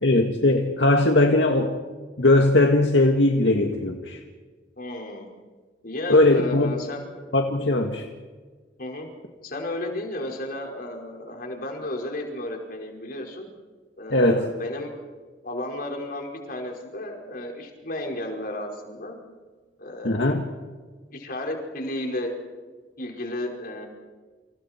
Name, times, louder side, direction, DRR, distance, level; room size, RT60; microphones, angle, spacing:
voice 1, 0.0-1.8 2.2-4.2 6.1-6.8 7.3-8.0 14.1-14.5 20.0-20.4, left 2 dB, 70° left, 3 dB, 2.0 m, -19 dB
voice 2, 4.8-5.3 5.8-7.1 8.8-9.1 9.4-13.5 14.0-14.9 15.4-19.2 19.8-20.2 21.1-22.4 23.0-23.9, left 1 dB, 55° left, 1 dB, 5.1 m, -33 dB
29.5 x 28.5 x 4.5 m, 1.4 s
head